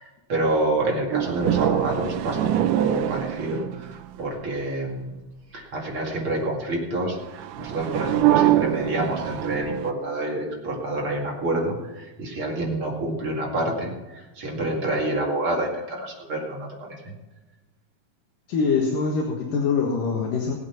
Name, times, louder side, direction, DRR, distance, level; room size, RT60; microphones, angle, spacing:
voice 1, 0.0-5.1 5.5-17.1, right 1 dB, 40° right, -1 dB, 2.8 m, -28 dB
sound 1, 1.1-4.2 7.3-9.9, right 13 dB, 80° right, 1.8 m, -24 dB
voice 2, 18.5-20.5, left 5 dB, 70° left, 0 dB, 3.2 m, -24 dB
19.5 x 8.4 x 5.8 m, 1.2 s
omnidirectional pair, 4.0 m